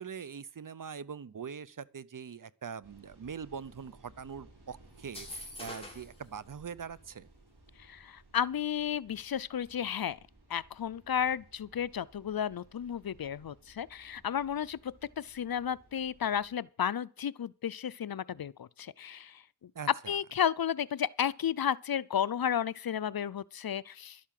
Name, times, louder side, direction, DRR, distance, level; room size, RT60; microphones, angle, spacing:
voice 1, 0.0-7.3 19.7-20.2, right 6 dB, 50° right, 0.7 m, -43 dB
sound 1, 2.8-16.5, right 2 dB, 70° right, 4.9 m, -60 dB
sound 2, 5.0-6.2, left 1 dB, 15° left, 3.8 m, -44 dB
voice 2, 7.9-10.2 10.5-19.4 20.1-24.2, left 9 dB, 60° left, 0.5 m, -33 dB
11.5 x 8.5 x 7.6 m
wide cardioid pair, 60°, 41 cm